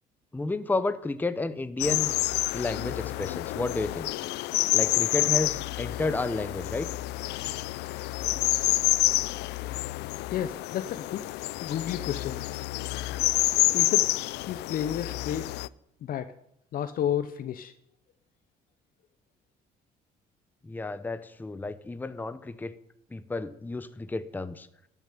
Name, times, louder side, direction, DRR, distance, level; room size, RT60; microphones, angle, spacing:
voice 1, 0.3-2.1 2.5-4.1 4.7-6.9 20.6-22.7 23.1-24.7, left 2 dB, 10° left, 13 dB, 0.7 m, -31 dB
sound 1, 1.8-15.7, left 19 dB, 85° left, 0.4 m, -28 dB
voice 2, 10.3-11.3 11.6-12.4 13.7-14.1 14.5-15.5 16.0-16.3 16.7-17.7, left 10 dB, 60° left, 11 dB, 0.7 m, -31 dB
13.0 x 7.2 x 9.9 m, 0.78 s
cardioid pair, 110°, 17 cm